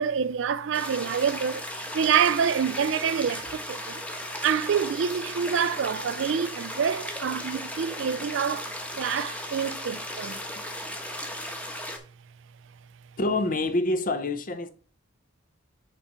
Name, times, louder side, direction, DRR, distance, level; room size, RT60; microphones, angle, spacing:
voice 1, 0.0-4.0 4.4-10.4, right 7 dB, 65° right, 0.4 m, -27 dB
sound 1, 0.7-12.0, left 1 dB, 5° left, 1.1 m, -36 dB
voice 2, 13.2-14.7, left 2 dB, 40° left, 0.7 m, -26 dB
7.3 x 4.1 x 5.5 m
head